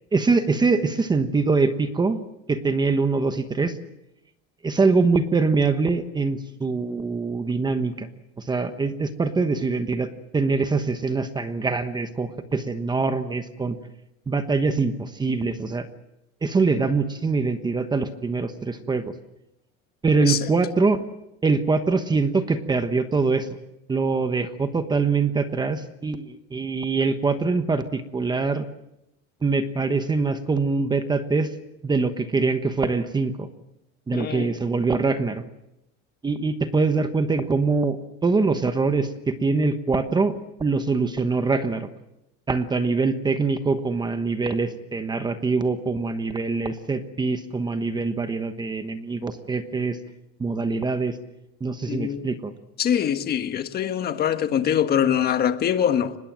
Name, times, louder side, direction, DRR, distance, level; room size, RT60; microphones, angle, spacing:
voice 1, 0.1-2.2 2.5-3.7 4.6-8.1 8.4-13.8 14.3-15.9 16.4-19.1 20.0-21.0 21.4-23.5 23.9-28.6 29.4-31.5 31.8-33.5 34.1-35.4 36.2-38.0 38.2-41.9 42.5-50.0 50.4-51.2 51.6-52.5, right 4 dB, 15° right, 1.2 m, -23 dB
voice 2, 34.1-34.6 51.9-52.3 52.8-56.2, left 9 dB, 35° left, 1.5 m, -23 dB
25.0 x 21.0 x 7.6 m
cardioid pair, 155°, 29 cm